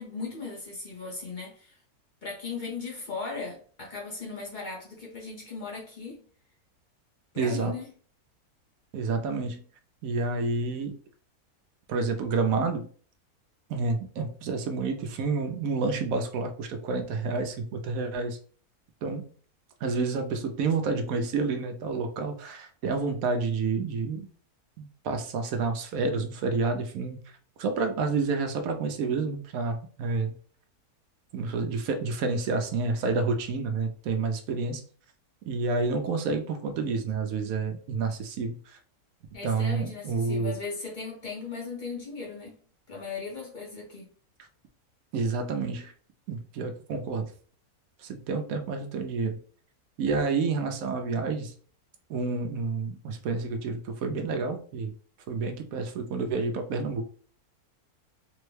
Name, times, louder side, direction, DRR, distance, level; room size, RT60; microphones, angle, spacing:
voice 1, 0.0-1.8 2.2-6.2 7.3-7.8 39.3-42.6 42.9-44.1, left 4 dB, 40° left, 0.8 m, -37 dB
voice 2, 7.4-7.7 8.9-9.6 10.0-10.9 11.9-12.9 13.7-18.4 19.0-19.2 19.8-24.3 24.8-27.2 27.6-30.3 31.3-34.8 35.5-38.8 39.4-40.6 45.1-45.9 46.3-47.3 48.0-49.4 50.0-51.5 52.1-54.9 55.3-57.0, right 4 dB, 75° right, 1.0 m, -29 dB
3.7 x 2.1 x 3.1 m
omnidirectional pair, 1.6 m